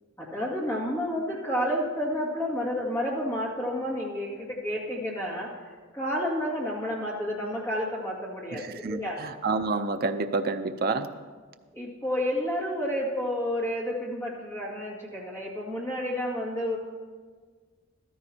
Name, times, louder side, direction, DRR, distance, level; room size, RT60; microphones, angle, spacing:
voice 1, 0.2-9.2 11.7-16.8, equal, 15° left, -4 dB, 2.1 m, -30 dB
voice 2, 8.8-11.1, right 3 dB, 45° right, 7 dB, 0.5 m, -28 dB
14.0 x 13.0 x 2.9 m, 1.5 s
head